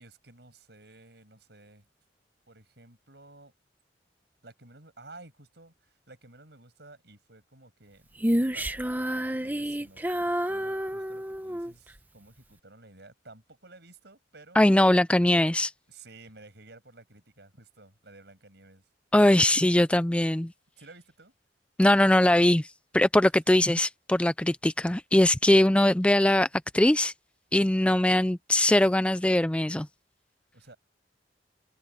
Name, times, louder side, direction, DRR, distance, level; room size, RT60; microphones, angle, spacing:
voice 1, 0.0-1.9 2.5-3.5 4.4-14.6 15.2-15.3 15.9-18.9 20.8-21.3 27.8-28.0 30.5-30.8, right 2 dB, 65° right, 7.8 m, -53 dB
Female singing, 8.2-11.7, equal, 10° right, 0.9 m, -29 dB
voice 2, 14.6-15.7 19.1-20.5 21.8-22.7 22.9-26.5 26.7-27.1 27.5-29.9, left 1 dB, 5° left, 0.4 m, -21 dB
open air
head